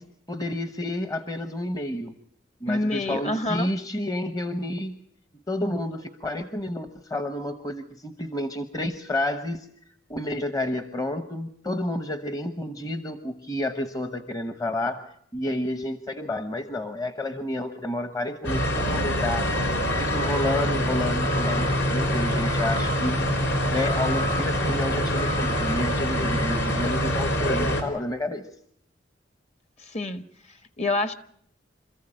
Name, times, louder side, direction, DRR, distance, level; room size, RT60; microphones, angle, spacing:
voice 1, 0.0-2.1 2.6-5.0 5.5-9.7 10.1-15.1 15.3-19.5 20.0-28.5, left 1 dB, 20° left, 1.0 m, -30 dB
voice 2, 2.7-3.7 16.2-16.5 29.8-30.2 30.5-31.1, left 2 dB, 40° left, 1.4 m, -28 dB
sound 1, 18.4-27.8, equal, 70° left, 4.3 m, -25 dB
27.0 x 14.5 x 8.8 m
head